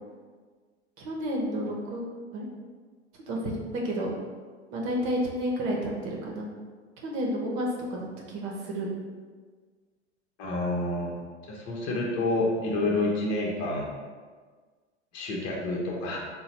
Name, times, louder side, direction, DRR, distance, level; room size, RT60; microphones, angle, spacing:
voice 1, 1.0-2.0 2.3-2.4 3.3-3.6 3.8-4.1 4.7-6.5 7.0-8.9, equal, 50° right, -1 dB, 0.9 m, -31 dB
voice 2, 10.4-11.1 11.5-13.9 15.1-16.2, left 2 dB, 45° left, -2 dB, 0.9 m, -28 dB
4.0 x 2.3 x 4.2 m, 1.5 s
figure-of-eight pair, 90°, 35 cm